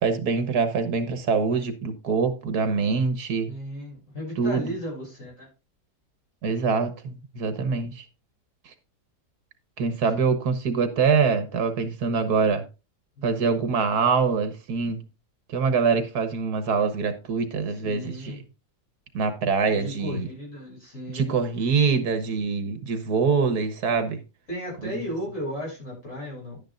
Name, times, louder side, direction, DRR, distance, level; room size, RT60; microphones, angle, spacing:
voice 1, 0.0-3.5 4.4-4.8 6.4-8.0 9.8-12.7 13.2-15.0 15.5-18.4 19.1-20.3 21.1-24.2 24.8-25.0, right 5 dB, 70° right, 1.7 m, -24 dB
voice 2, 3.5-5.5 13.2-13.3 17.8-18.4 19.7-21.4 24.5-26.6, equal, 50° left, 7.1 m, -35 dB
11.0 x 9.6 x 2.6 m
omnidirectional pair, 1.7 m